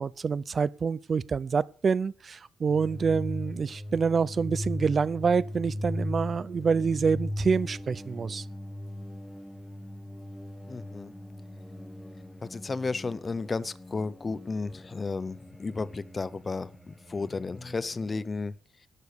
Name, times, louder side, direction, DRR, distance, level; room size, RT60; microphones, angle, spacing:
voice 1, 0.0-8.5, right 5 dB, 40° right, 0.6 m, -27 dB
sound 1, 2.7-18.2, left 1 dB, 5° left, 1.4 m, -39 dB
voice 2, 10.7-11.1 12.4-18.5, left 3 dB, 25° left, 0.7 m, -33 dB
12.0 x 8.3 x 6.7 m
cardioid pair, 135°, 0 cm